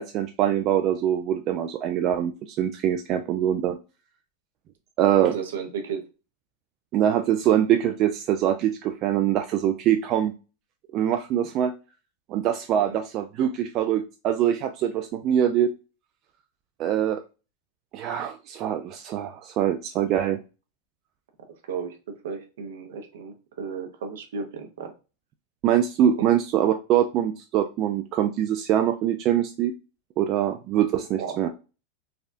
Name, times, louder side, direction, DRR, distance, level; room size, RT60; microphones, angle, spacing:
voice 1, 0.0-3.8 5.0-5.3 6.9-10.3 10.9-11.7 12.3-15.7 16.8-17.2 17.9-20.4 25.6-29.7 30.2-31.5, right 10 dB, 45° right, 6 dB, 0.3 m, -23 dB
voice 2, 5.2-6.1 12.7-13.0 21.7-24.9 26.2-26.3 31.2-31.5, right 6 dB, 75° right, 5 dB, 0.7 m, -34 dB
3.4 x 2.2 x 2.5 m, 0.31 s
hypercardioid pair, 100°, 0 cm